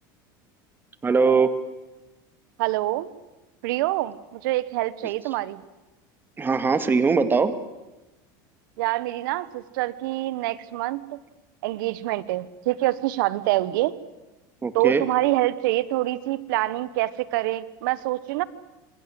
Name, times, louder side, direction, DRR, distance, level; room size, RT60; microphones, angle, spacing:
voice 1, 1.0-1.5 6.4-7.5 14.6-15.0, right 4 dB, 20° right, 12 dB, 2.0 m, -20 dB
voice 2, 2.6-3.1 3.6-5.6 8.8-11.2 11.6-13.9 14.7-18.4, right 17 dB, 80° right, 18 dB, 1.3 m, -26 dB
26.5 x 21.5 x 7.9 m, 1.1 s
supercardioid pair, 120°, 11 cm